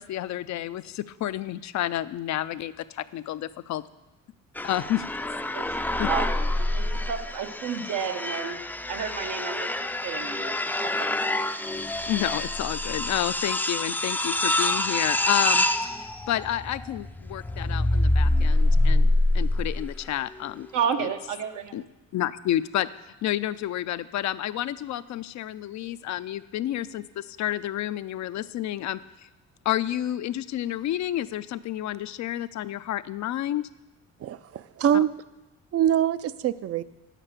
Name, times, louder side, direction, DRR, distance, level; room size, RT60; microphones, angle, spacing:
voice 1, 0.0-3.8 4.6-5.0 6.0-6.1 12.1-19.1 19.3-20.7 21.0-21.1 21.7-21.8 22.1-22.9 23.2-29.0 29.7-33.7, left 13 dB, 65° left, 13 dB, 0.5 m, -30 dB
sound 1, 4.6-20.0, left 1 dB, 5° left, 0.4 m, -26 dB
voice 2, 6.7-8.6 8.9-10.9 20.7-21.8, right 7 dB, 80° right, 6 dB, 1.1 m, -31 dB
voice 3, 34.2-35.1 35.7-36.8, right 10 dB, 50° right, 16 dB, 0.5 m, -24 dB
8.8 x 7.5 x 6.7 m, 0.99 s
cardioid pair, 90°, 30 cm